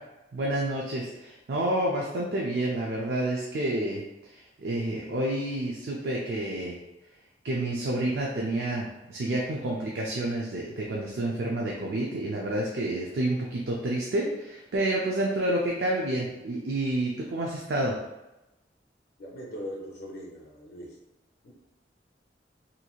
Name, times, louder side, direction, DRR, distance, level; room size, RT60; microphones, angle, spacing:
voice 1, 0.3-6.8 7.4-18.0, right 1 dB, 70° right, -2 dB, 0.4 m, -29 dB
voice 2, 19.2-21.0 21.4-21.5, equal, 60° left, -3 dB, 0.5 m, -40 dB
3.0 x 2.6 x 2.3 m, 0.98 s
head